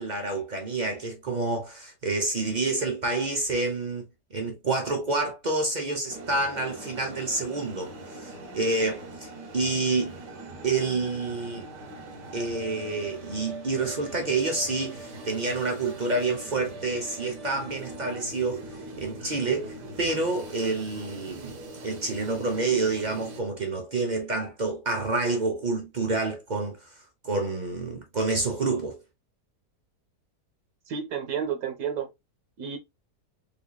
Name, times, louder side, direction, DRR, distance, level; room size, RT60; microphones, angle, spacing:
voice 1, 0.0-4.0 4.3-10.1 10.6-11.7 12.3-18.7 19.0-21.6 21.8-29.0, right 3 dB, 45° right, 0.6 m, -28 dB
sound 1, 6.1-23.4, right 2 dB, 85° right, 1.7 m, -42 dB
voice 2, 30.9-32.1 32.6-32.8, right 7 dB, 65° right, 1.3 m, -31 dB
3.6 x 3.4 x 2.3 m
omnidirectional pair, 1.8 m